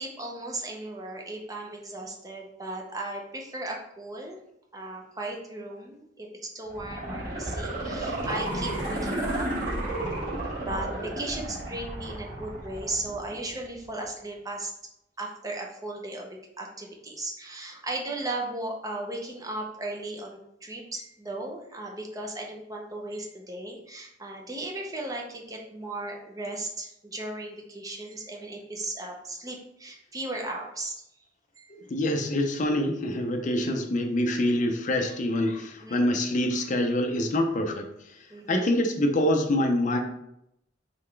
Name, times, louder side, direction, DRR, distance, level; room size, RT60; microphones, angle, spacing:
voice 1, 0.0-4.4 4.7-9.5 9.8-14.7 15.2-31.0 31.6-31.7 33.4-33.7 35.8-36.1 38.3-38.7, right 2 dB, 20° right, 0 dB, 0.6 m, -36 dB
sound 1, 6.7-13.6 14.0-14.1, right 1 dB, 45° right, 1.4 m, -32 dB
voice 2, 31.7-38.2 38.5-40.0, left 1 dB, 40° left, 4 dB, 0.5 m, -26 dB
4.0 x 3.2 x 3.2 m, 0.79 s
head